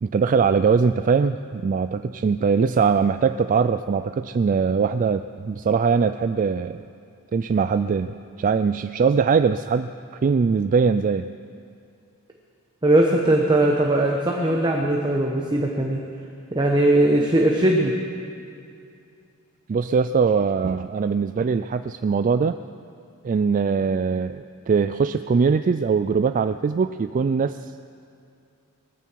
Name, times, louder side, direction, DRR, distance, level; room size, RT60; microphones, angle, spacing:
voice 1, 0.0-6.8 7.3-9.9 10.2-11.3 19.7-22.6 23.2-27.9, right 5 dB, 35° right, 10 dB, 0.3 m, -21 dB
voice 2, 12.8-16.0 16.5-17.9, right 1 dB, 20° right, 0 dB, 1.1 m, -19 dB
20.0 x 15.0 x 4.7 m, 2.4 s
head